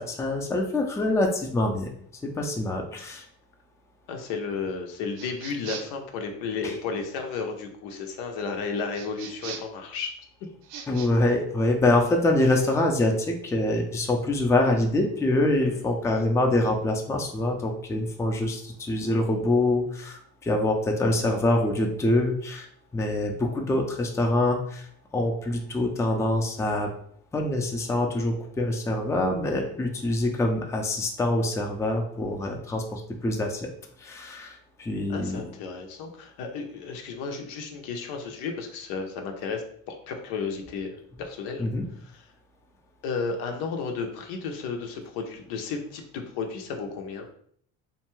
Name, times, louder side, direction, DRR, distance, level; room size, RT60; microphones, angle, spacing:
voice 1, 0.0-1.9 2.4-3.3 6.6-6.7 10.9-22.7 22.9-24.9 25.1-26.9 27.3-33.7 34.0-35.4 41.6-41.9, left 2 dB, 10° left, 2 dB, 0.4 m, -25 dB
voice 2, 4.1-10.1 15.6-15.9 35.1-41.6 43.0-47.3, left 5 dB, 80° left, 3 dB, 0.6 m, -33 dB
sound 1, 5.1-6.0 8.9-9.8 10.6-11.1, right 7 dB, 80° right, 0.5 m, -40 dB
2.6 x 2.2 x 3.0 m, 0.63 s
supercardioid pair, 85°, 37 cm